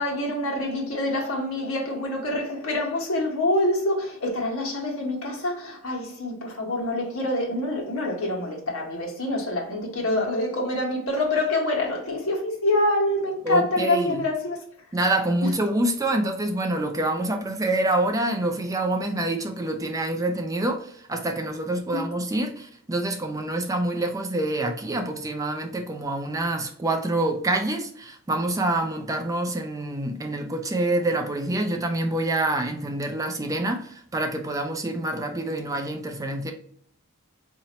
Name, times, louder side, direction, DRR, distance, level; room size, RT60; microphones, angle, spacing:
voice 1, 0.0-14.6 15.4-15.5 21.9-22.0, left 1 dB, 70° left, 1.2 m, -26 dB
voice 2, 13.5-14.2 14.9-36.5, right 2 dB, 15° right, 0.3 m, -26 dB
4.0 x 2.8 x 2.9 m
head